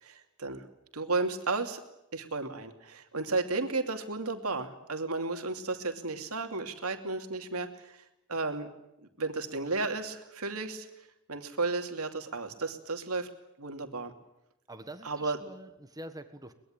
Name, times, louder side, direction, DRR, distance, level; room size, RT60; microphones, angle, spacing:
voice 1, 0.0-0.6 0.9-1.8 2.1-8.0 8.3-8.7 9.2-10.9 11.3-13.3 13.6-14.1 15.0-15.4, right 3 dB, 80° right, 6 dB, 2.8 m, -33 dB
voice 2, 14.7-16.5, right 1 dB, 15° right, 8 dB, 1.5 m, -45 dB
23.5 x 21.0 x 9.0 m, 0.89 s
head